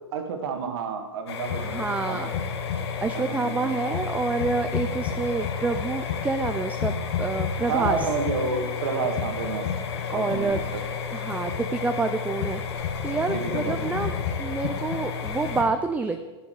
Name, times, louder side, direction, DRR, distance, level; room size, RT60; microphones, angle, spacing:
voice 1, 0.1-2.3 3.1-3.7 7.7-9.7 10.1-10.8 13.3-14.1, right 5 dB, 60° right, 5 dB, 1.9 m, -30 dB
sound 1, 1.3-15.6, left 7 dB, 65° left, 1.7 m, -30 dB
voice 2, 1.6-2.3 3.0-8.1 10.1-10.6 11.1-12.6 13.0-14.1 14.4-16.2, right 4 dB, 10° right, 7 dB, 0.5 m, -28 dB
10.5 x 9.1 x 4.8 m, 1.3 s
hypercardioid pair, 110°, 15 cm